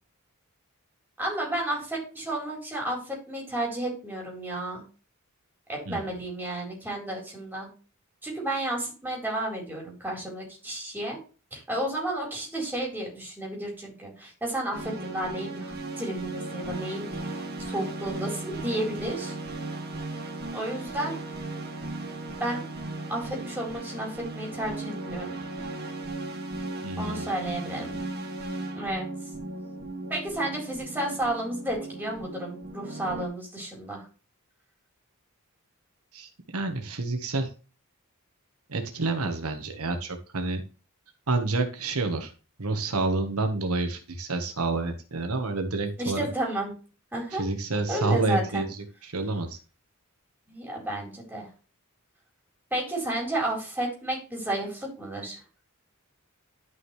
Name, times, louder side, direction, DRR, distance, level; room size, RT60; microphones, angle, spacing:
voice 1, 1.2-4.8 5.7-7.7 8.2-11.2 11.5-17.3 17.6-19.3 20.5-21.2 22.4-22.6 23.1-25.3 27.0-28.0 28.7-29.1 30.1-34.0 46.0-46.7 47.1-47.4 47.7-48.6 50.5-51.5 52.7-55.4, right 1 dB, 10° right, -2 dB, 4.1 m, -32 dB
sound 1, 14.7-33.3, right 2 dB, 45° right, 2.0 m, -36 dB
voice 2, 26.8-27.3 36.1-37.5 38.7-40.6 41.3-42.3 42.6-46.3 47.3-49.6, right 3 dB, 80° right, 6 dB, 1.4 m, -29 dB
11.0 x 6.1 x 3.3 m, 0.34 s
head